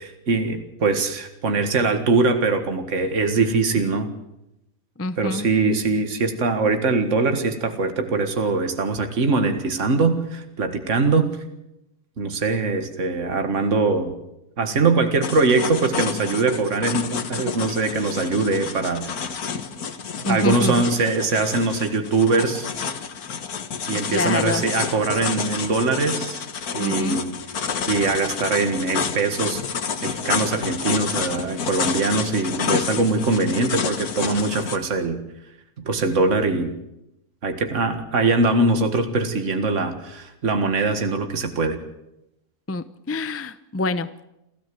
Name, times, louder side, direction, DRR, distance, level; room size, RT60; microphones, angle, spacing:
voice 1, 0.0-4.1 5.2-11.3 12.2-14.1 14.6-19.4 20.3-22.7 23.9-26.4 26.7-27.3 27.9-29.6 30.0-35.2 35.8-36.7 37.4-41.8, right 3 dB, 55° right, 7 dB, 2.1 m, -22 dB
voice 2, 5.0-5.5 20.2-20.7 24.1-24.6 26.8-27.2 42.7-44.2, left 2 dB, 15° left, 12 dB, 0.6 m, -26 dB
sound 1, 15.2-34.8, left 6 dB, 85° left, 1.9 m, -29 dB
29.5 x 13.0 x 7.8 m, 0.88 s
omnidirectional pair, 1.5 m